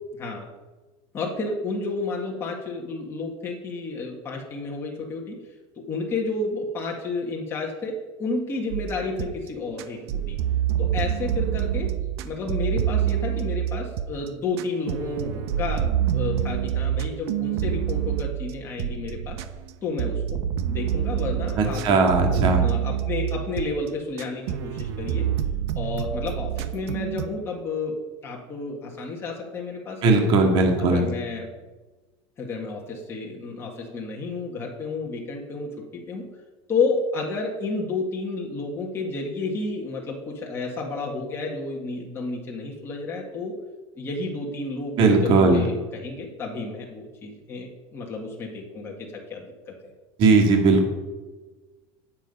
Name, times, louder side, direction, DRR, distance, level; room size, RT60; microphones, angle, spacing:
voice 1, 1.1-5.4 5.9-10.4 10.8-11.9 12.2-15.8 16.1-19.4 19.8-20.4 20.7-25.3 25.7-27.9 28.2-30.4 30.8-31.5 32.4-36.3 36.7-43.5 43.9-49.7, left 3 dB, 15° left, -2 dB, 1.7 m, -31 dB
sound 1, 8.7-9.5 9.8-14.3 14.6-19.7 20.0-23.9 24.2-27.3, right 10 dB, 60° right, 1.0 m, -27 dB
voice 2, 21.6-22.6 30.0-31.0 45.0-45.6 50.2-50.9, right 3 dB, 35° right, 2 dB, 2.1 m, -18 dB
18.0 x 7.4 x 5.4 m, 1.2 s
supercardioid pair, 180°, 15 cm